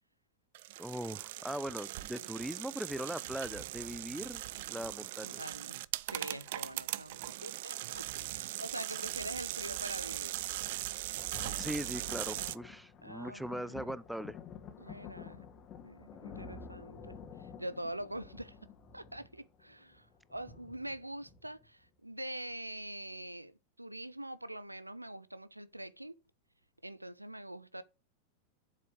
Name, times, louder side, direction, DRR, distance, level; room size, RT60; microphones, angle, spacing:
sound 1, 0.6-12.6, right 17 dB, 50° right, 0.5 m, -40 dB
voice 1, 0.8-4.4 4.7-5.4 11.6-14.4, equal, ahead, 0.6 m, -40 dB
voice 2, 5.2-10.4 13.0-14.0 14.8-15.5 15.8-18.6 18.9-26.2 26.8-27.8, right 1 dB, 85° right, 0.7 m, -44 dB
Thunder, 10.8-21.8 22.5-22.6, left 6 dB, 30° left, 2.0 m, -50 dB
7.8 x 7.6 x 6.1 m
figure-of-eight pair, 90°, 0 cm